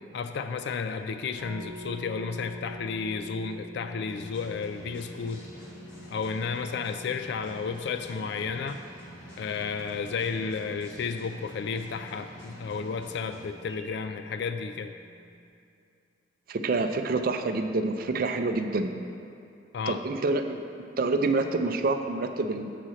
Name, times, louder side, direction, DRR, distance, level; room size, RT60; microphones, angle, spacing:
voice 1, 0.1-5.4 6.1-8.8 9.4-14.9 19.7-20.0, left 5 dB, 65° left, 8 dB, 0.3 m, -32 dB
sound 1, 1.4-15.5, equal, 15° right, 0.9 m, -47 dB
sound 2, 4.1-13.8, equal, 80° left, 1.8 m, -47 dB
voice 2, 16.5-18.9 19.9-20.6 21.0-22.7, right 3 dB, 50° right, 7 dB, 0.4 m, -27 dB
7.5 x 4.2 x 6.3 m, 2.5 s
head